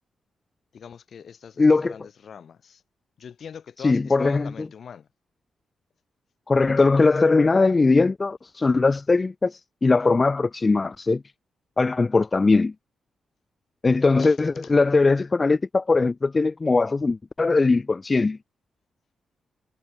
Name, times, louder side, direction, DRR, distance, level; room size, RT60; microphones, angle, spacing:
voice 1, 0.7-2.8 3.2-5.1 14.2-14.7, left 7 dB, 65° left, 4.7 m, -42 dB
voice 2, 1.6-1.9 3.8-4.5 6.5-11.2 11.8-12.7 13.8-18.4, left 3 dB, 35° left, 0.3 m, -20 dB
cardioid pair, 65°, 0 cm